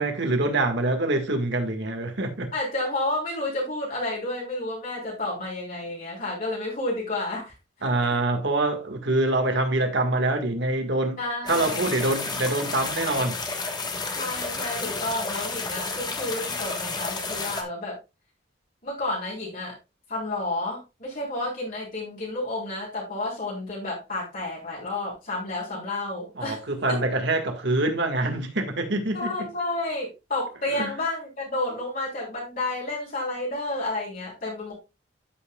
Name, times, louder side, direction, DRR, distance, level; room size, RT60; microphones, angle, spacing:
voice 1, 0.0-2.5 7.8-11.2 11.4-13.4 26.4-29.3 30.7-30.9, right 2 dB, 60° right, 1.7 m, -25 dB
voice 2, 2.5-7.5 8.1-8.2 11.2-12.0 14.1-18.0 18.8-19.8 20.1-27.0 29.1-34.7, left 2 dB, 45° left, 3.8 m, -31 dB
sound 1, 11.5-17.6, left 3 dB, 20° left, 1.3 m, -31 dB
13.5 x 5.7 x 2.3 m
head